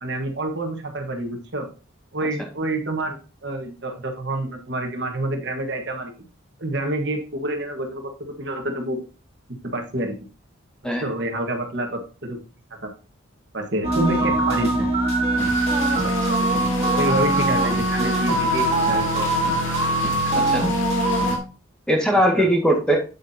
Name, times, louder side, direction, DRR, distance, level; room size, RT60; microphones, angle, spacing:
voice 1, 0.0-1.7 2.1-6.1 6.6-8.1 8.4-9.0 9.6-10.1 11.0-12.4 12.8-12.9 13.5-14.9 17.0-19.3 22.1-22.5, right 1 dB, 55° right, 4 dB, 1.5 m, -27 dB
sound 1, 13.8-21.4, right 1 dB, 30° right, 2.0 m, -22 dB
sound 2, 15.4-21.4, left 3 dB, 75° left, 2.6 m, -34 dB
voice 2, 16.0-16.4 20.4-20.7 21.9-23.0, equal, 5° left, 0 dB, 1.8 m, -20 dB
8.5 x 8.0 x 2.8 m, 0.35 s
head